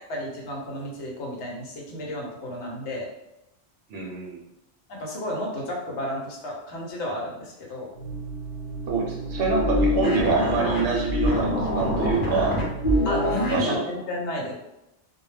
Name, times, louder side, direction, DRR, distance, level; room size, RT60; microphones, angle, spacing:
voice 1, 0.1-3.1 4.9-7.9 13.0-14.5, left 1 dB, 85° left, -2 dB, 1.0 m, -32 dB
voice 2, 3.9-4.4 8.9-12.6 13.2-13.8, right 4 dB, 65° right, -1 dB, 0.8 m, -26 dB
sound 1, 8.0-13.7, left 1 dB, 45° left, 0.7 m, -26 dB
2.2 x 2.1 x 3.2 m, 0.91 s
omnidirectional pair, 1.1 m